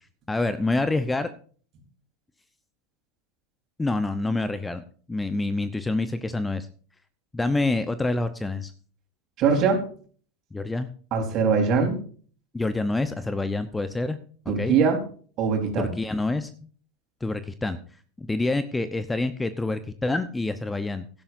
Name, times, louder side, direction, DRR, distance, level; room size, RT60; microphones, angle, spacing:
voice 1, 0.3-1.3 3.8-4.8 5.1-6.7 7.3-8.7 10.5-10.9 12.5-14.2 14.6-14.8 15.8-16.5 17.2-17.8 18.2-21.1, left 2 dB, 10° left, 12 dB, 0.9 m, -27 dB
voice 2, 9.4-9.8 11.1-12.0 14.5-15.0 15.4-15.9, right 5 dB, 45° right, 3 dB, 4.0 m, -22 dB
17.0 x 11.5 x 2.7 m, 0.43 s
hypercardioid pair, 90°, 0 cm